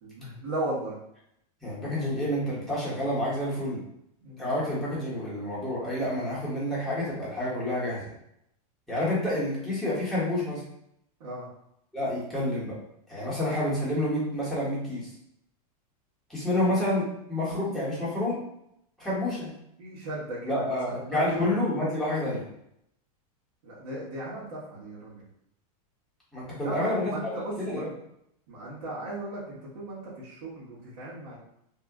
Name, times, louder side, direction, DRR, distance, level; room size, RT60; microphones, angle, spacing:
voice 1, 0.0-1.0 4.2-4.5 11.2-11.5 16.5-16.7 19.8-21.5 23.6-25.3 26.6-27.9 28.5-31.4, right 1 dB, 60° right, -9 dB, 1.3 m, -36 dB
voice 2, 1.6-3.8 4.4-8.0 8.9-10.6 11.9-12.7 13.1-15.1 16.3-18.4 19.0-19.5 20.5-22.4 26.3-27.2 27.6-27.9, left 1 dB, ahead, -9 dB, 1.2 m, -28 dB
2.8 x 2.4 x 3.6 m, 0.76 s
supercardioid pair, 150°, 19 cm